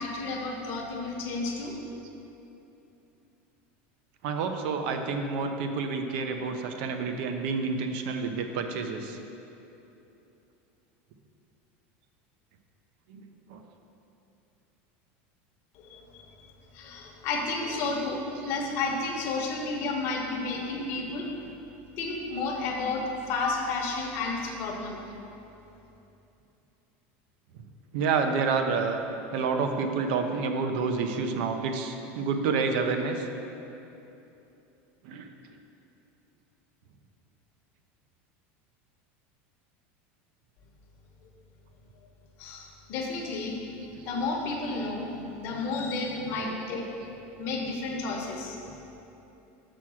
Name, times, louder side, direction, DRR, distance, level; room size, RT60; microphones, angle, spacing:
voice 1, 0.0-1.8 15.7-16.3 16.7-21.3 22.0-25.0 41.2-41.3 42.4-43.6 44.0-45.1 45.4-46.9 47.2-49.0, left 3 dB, 45° left, 0 dB, 1.0 m, -32 dB
voice 2, 4.2-9.2 13.1-13.2 13.5-13.6 20.8-21.1 27.9-29.0 29.3-33.2 35.0-35.3 43.9-44.0 46.4-46.6, right 5 dB, 60° right, 6 dB, 0.6 m, -29 dB
6.0 x 4.7 x 6.1 m, 2.9 s
supercardioid pair, 165°, 6 cm